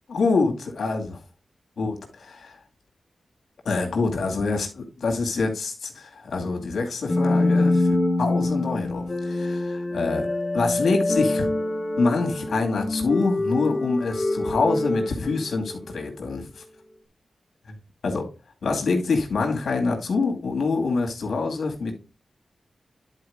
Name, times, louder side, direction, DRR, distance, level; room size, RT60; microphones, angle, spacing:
voice 1, 0.1-1.1 1.8-2.5 3.6-10.3 10.5-11.5 12.0-16.6 18.0-18.3 18.6-21.9, left 3 dB, 80° left, 2.3 m, -25 dB
sound 1, 7.1-16.0, left 2 dB, 30° left, 1.2 m, -25 dB
10.5 x 4.7 x 3.6 m
cardioid pair, 65°, 0 cm